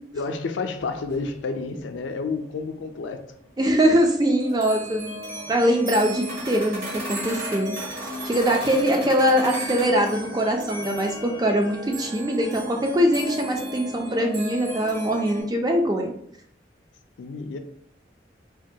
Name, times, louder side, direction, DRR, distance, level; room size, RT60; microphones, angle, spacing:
voice 1, 0.1-3.2 9.0-9.1 17.2-17.6, left 4 dB, 80° left, 7 dB, 0.4 m, -30 dB
sound 1, 0.8-0.9 1.1-3.1 3.4-3.5 4.0-4.1 4.4-15.4, equal, 50° right, 1.2 m, -34 dB
voice 2, 3.6-5.2 5.5-7.8 8.2-16.1, equal, 20° right, 2 dB, 0.3 m, -22 dB
3.4 x 2.2 x 2.7 m, 0.67 s
head